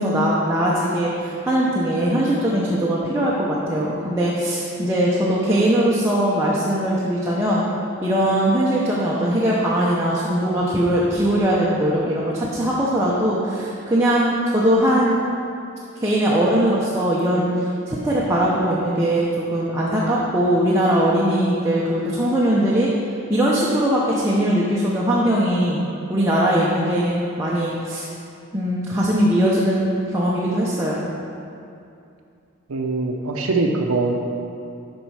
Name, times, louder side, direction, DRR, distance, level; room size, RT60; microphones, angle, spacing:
voice 1, 0.0-7.7 8.0-15.2 16.0-17.5 17.9-22.9 23.3-25.8 26.1-28.1 28.5-31.0, right 1 dB, 15° right, -6 dB, 0.6 m, -20 dB
voice 2, 32.7-34.1, right 3 dB, 85° right, 1 dB, 0.6 m, -22 dB
7.2 x 5.3 x 4.7 m, 2.5 s
head